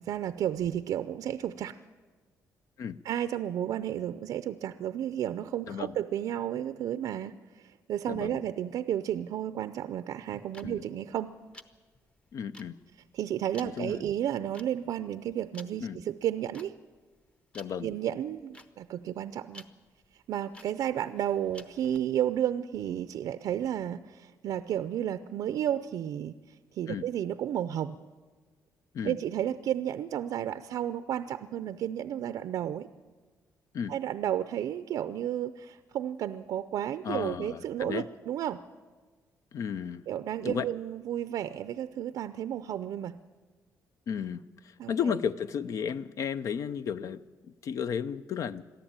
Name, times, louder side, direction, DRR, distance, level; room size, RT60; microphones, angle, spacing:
voice 1, 0.0-1.8 3.0-11.3 13.1-16.7 17.8-19.7 20.3-26.3 26.7-28.0 29.0-32.9 33.9-38.6 40.1-43.1 44.8-44.9, right 10 dB, 70° right, 12 dB, 0.6 m, -32 dB
voice 2, 8.1-8.4 10.6-10.8 12.3-12.8 13.6-14.1 15.8-16.0 17.5-17.9 26.9-27.1 28.9-29.2 33.7-33.9 37.0-38.0 39.5-40.0 40.4-40.6 44.1-47.2 47.6-48.6, left 7 dB, 55° left, 14 dB, 0.6 m, -33 dB
sound 1, 10.2-22.0, left 1 dB, 15° left, 0.9 m, -53 dB
22.0 x 14.0 x 8.9 m, 1.4 s
cardioid pair, 150°, 7 cm